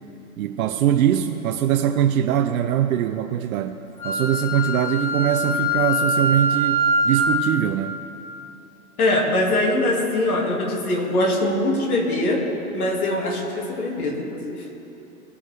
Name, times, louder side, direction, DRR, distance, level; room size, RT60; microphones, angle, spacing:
voice 1, 0.4-8.0, right 10 dB, 70° right, 6 dB, 0.6 m, -22 dB
Wind instrument woodwind instrument, 4.0-7.4, equal, 5° left, 0.7 m, -23 dB
voice 2, 9.0-12.4 12.7-14.7, left 1 dB, 75° left, 0 dB, 2.3 m, -22 dB
17.0 x 6.4 x 3.3 m, 2.9 s
hypercardioid pair, 130°, 44 cm